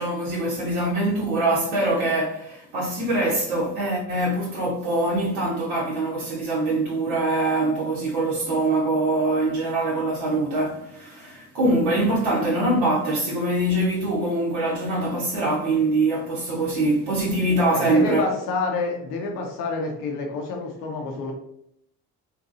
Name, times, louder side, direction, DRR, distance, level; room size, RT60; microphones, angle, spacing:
voice 1, 0.0-18.2, right 2 dB, 70° right, 0.8 m, -23 dB
voice 2, 17.6-21.3, left 3 dB, 80° left, 0.8 m, -28 dB
2.7 x 2.6 x 2.4 m
hypercardioid pair, 45°, 47 cm